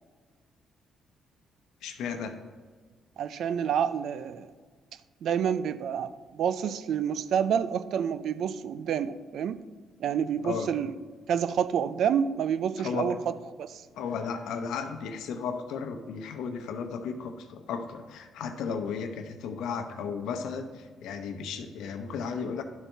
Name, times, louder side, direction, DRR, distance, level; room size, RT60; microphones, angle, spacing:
voice 1, 1.8-2.4 10.4-10.7 12.8-13.1 13.9-22.6, left 6 dB, 85° left, 6 dB, 0.8 m, -34 dB
voice 2, 3.2-4.5 5.2-9.6 10.0-10.9 11.3-13.2 13.6-13.8, right 8 dB, 70° right, 14 dB, 0.4 m, -28 dB
11.5 x 4.1 x 4.5 m, 1.5 s
cardioid pair, 90°, 0 cm